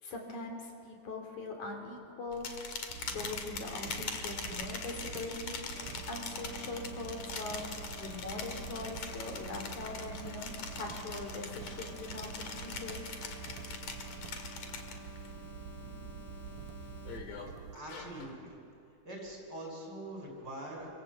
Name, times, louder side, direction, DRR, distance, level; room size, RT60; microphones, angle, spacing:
voice 1, 0.0-2.5 3.1-13.1, left 3 dB, 85° left, 2 dB, 5.0 m, -42 dB
sound 1, 2.3-15.3 15.6-16.0 16.5-18.3, left 5 dB, 65° left, 3.3 m, -43 dB
sound 2, 2.9-17.8, right 8 dB, 90° right, 2.3 m, -47 dB
sound 3, 5.8-17.2, left 4 dB, 45° left, 3.3 m, -52 dB
voice 2, 15.8-16.1 17.5-18.6 18.9-20.9, right 1 dB, 35° right, 0 dB, 6.4 m, -44 dB
27.0 x 25.5 x 7.9 m, 2.6 s
omnidirectional pair, 3.3 m